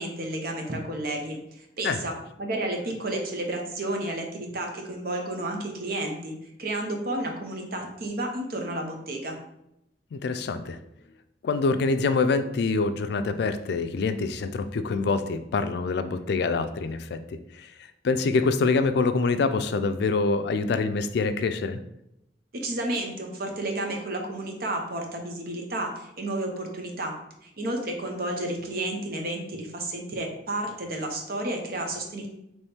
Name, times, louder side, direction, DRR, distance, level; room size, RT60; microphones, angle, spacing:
voice 1, 0.0-2.1 2.4-6.3 6.6-9.4 22.5-27.1 27.4-32.3, right 1 dB, 60° right, 2 dB, 0.8 m, -31 dB
voice 2, 10.1-10.8 11.4-17.2 17.5-17.7 18.0-21.8, left 4 dB, 65° left, 10 dB, 0.4 m, -25 dB
4.2 x 3.0 x 3.5 m, 0.81 s
head